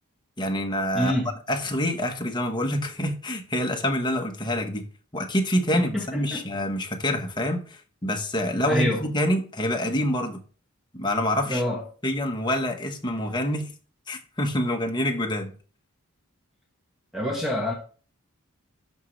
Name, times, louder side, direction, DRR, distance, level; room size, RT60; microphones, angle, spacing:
voice 1, 0.4-1.2 1.5-4.8 5.1-10.4 10.9-11.6 12.0-13.7 14.1-15.5, left 1 dB, 20° left, 1.2 m, -26 dB
voice 2, 0.9-1.3 5.7-6.4 8.6-9.0 11.5-11.8 17.1-17.7, equal, ahead, 1.4 m, -26 dB
12.0 x 5.1 x 3.3 m
head